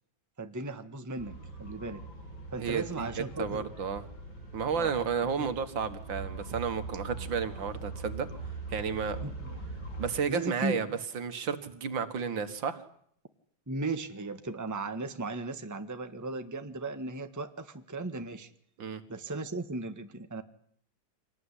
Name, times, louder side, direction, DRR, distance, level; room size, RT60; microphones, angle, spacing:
voice 1, 0.4-2.0 2.5-3.7 4.7-4.9 5.4-5.5 9.2-9.6 10.3-11.0 13.7-18.5 19.1-20.4, right 3 dB, 10° right, 8 dB, 1.3 m, -36 dB
sound 1, 1.2-10.2, right 3 dB, 85° left, 5.6 m, -42 dB
voice 2, 2.6-4.0 4.5-8.3 8.7-9.2 10.0-12.8 18.8-19.0, right 6 dB, 80° right, 10 dB, 2.4 m, -32 dB
26.0 x 19.0 x 10.0 m, 0.66 s
omnidirectional pair, 2.1 m